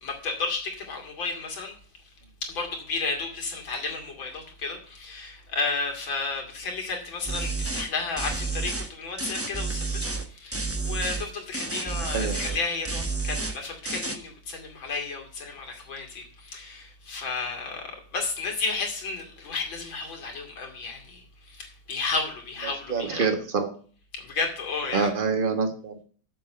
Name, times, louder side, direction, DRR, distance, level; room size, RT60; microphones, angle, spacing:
voice 1, 0.0-1.7 2.4-17.8 18.1-21.2 21.5-23.3 24.2-25.1, left 4 dB, 85° left, 3.3 m, -32 dB
sound 1, 7.2-7.9 8.2-8.9 9.2-10.3 10.5-11.3 11.5-12.6 12.8-13.6 13.8-14.2, right 3 dB, 15° right, 0.6 m, -30 dB
voice 2, 12.0-12.5 22.9-23.7 24.9-26.0, right 5 dB, 30° right, 1.5 m, -26 dB
7.4 x 6.8 x 7.6 m
omnidirectional pair, 2.1 m